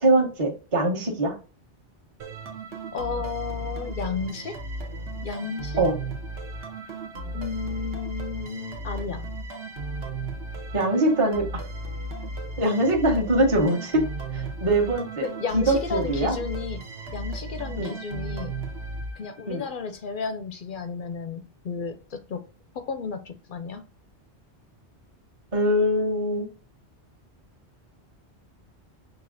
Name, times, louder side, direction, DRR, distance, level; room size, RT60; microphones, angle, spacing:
voice 1, 0.0-1.3 5.8-6.0 10.7-11.4 12.6-13.9 14.3-15.3 15.5-16.3 17.8-17.9 19.5-19.6 25.5-26.5, right 1 dB, 30° right, -1 dB, 0.9 m, -22 dB
sound 1, 2.2-19.7, right 2 dB, 75° right, 1.1 m, -35 dB
voice 2, 2.9-4.6 5.2-5.8 7.3-9.3 15.2-16.8 17.1-18.5 19.2-22.4 22.7-23.8, left 5 dB, 60° left, 8 dB, 0.6 m, -33 dB
5.9 x 2.6 x 2.5 m, 0.34 s
omnidirectional pair, 1.2 m